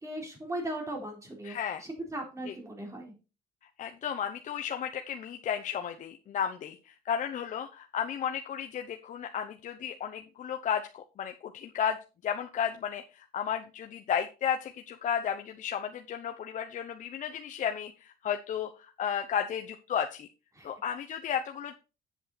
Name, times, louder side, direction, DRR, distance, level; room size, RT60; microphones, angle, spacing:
voice 1, 0.0-3.1 20.5-20.7, right 1 dB, 20° right, 2 dB, 3.8 m, -38 dB
voice 2, 1.4-1.8 2.5-2.6 3.8-12.0 12.2-20.3 20.6-21.7, left 8 dB, 50° left, 5 dB, 0.8 m, -33 dB
8.1 x 7.6 x 4.2 m, 0.31 s
cardioid pair, 110°, 17 cm